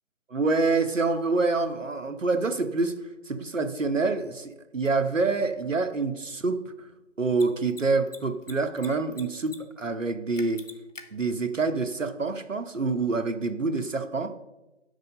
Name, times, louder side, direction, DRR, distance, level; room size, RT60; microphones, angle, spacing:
voice 1, 0.3-2.9 3.3-6.6 7.2-10.6 11.1-14.3, right 3 dB, 80° right, 8 dB, 1.0 m, -26 dB
Mechanisms, 4.8-4.9 7.2-7.4 7.7-7.8 8.1-8.9 9.1-9.6 9.8-9.9 10.4-11.0, left 3 dB, 75° left, 1.3 m, -43 dB
8.3 x 6.6 x 5.3 m, 1.0 s
figure-of-eight pair, 160°, 38 cm